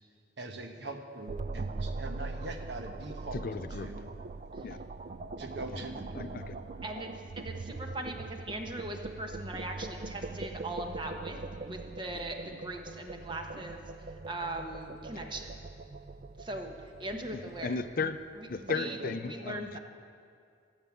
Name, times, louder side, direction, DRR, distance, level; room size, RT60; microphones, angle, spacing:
voice 1, 0.4-3.4 3.8-4.1 5.4-6.3 18.7-19.1, right 2 dB, 70° right, 5 dB, 1.1 m, -42 dB
sound 1, 1.3-18.5, right 3 dB, 40° right, 0.4 m, -42 dB
voice 2, 3.3-3.9 4.6-4.8 5.7-5.8 6.1-6.6 17.3-18.2 18.5-19.8, left 4 dB, 50° left, 11 dB, 0.5 m, -35 dB
voice 3, 6.8-11.4 11.6-15.5 16.4-16.7 17.0-17.8 18.4-19.0 19.2-19.8, right 1 dB, 25° right, 3 dB, 1.1 m, -40 dB
14.0 x 8.1 x 7.2 m, 2.3 s
head